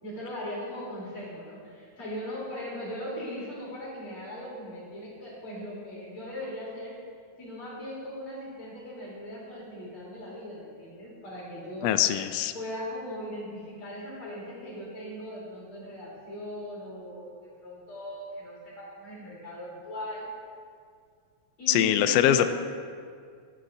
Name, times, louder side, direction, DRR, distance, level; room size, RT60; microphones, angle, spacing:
voice 1, 0.0-7.0 7.4-12.0 12.5-20.3 21.6-22.6, equal, 45° left, -6 dB, 4.3 m, -39 dB
voice 2, 11.8-12.5 21.7-22.5, left 11 dB, 85° left, 9 dB, 1.4 m, -23 dB
15.0 x 11.5 x 2.7 m, 2.1 s
omnidirectional pair, 3.3 m